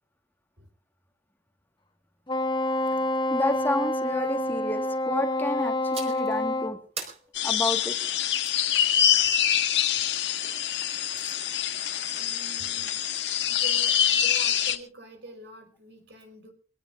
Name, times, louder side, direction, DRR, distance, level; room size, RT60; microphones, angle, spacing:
Wind instrument woodwind instrument, 2.3-6.8, left 1 dB, 30° left, 1.5 m, -27 dB
voice 1, 3.3-6.8 7.4-7.9, left 1 dB, 10° left, 5 dB, 1.8 m, -30 dB
sound 1, 5.9-6.3 7.0-8.6 10.8-11.4, right 4 dB, 40° right, 4.9 m, -41 dB
sound 2, 7.3-14.8, left 9 dB, 85° left, 1.7 m, -25 dB
voice 2, 12.2-13.0 13.5-16.5, right 1 dB, 75° right, 5 dB, 4.9 m, -46 dB
24.0 x 17.5 x 2.6 m, 0.38 s
head